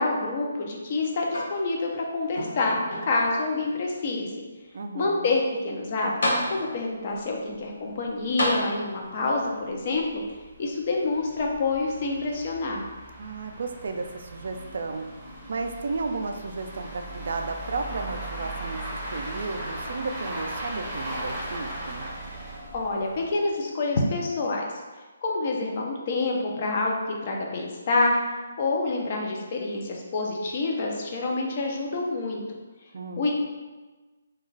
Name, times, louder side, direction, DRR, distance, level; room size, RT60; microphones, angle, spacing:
voice 1, 0.0-4.3 4.9-10.2 10.6-12.9 22.7-24.6 25.2-28.2 28.6-32.6 33.2-33.3, left 3 dB, 40° left, 0 dB, 0.5 m, -27 dB
sound 1, 1.3-2.0 2.4-3.4 4.1-4.2 5.7-5.8 6.2-7.0 8.4-9.2 10.3-10.4, left 1 dB, 75° left, 0.8 m, -29 dB
voice 2, 4.7-5.4 13.2-15.1 15.5-18.8 19.1-22.1 32.9-33.3, right 3 dB, 65° right, 5 dB, 0.3 m, -33 dB
sound 2, 7.1-7.2 7.5-7.6 8.0-8.1 8.5-8.6 9.2-23.6, right 1 dB, 10° right, 0.6 m, -38 dB
2.3 x 2.3 x 3.1 m, 1.2 s
hypercardioid pair, 155°, 0 cm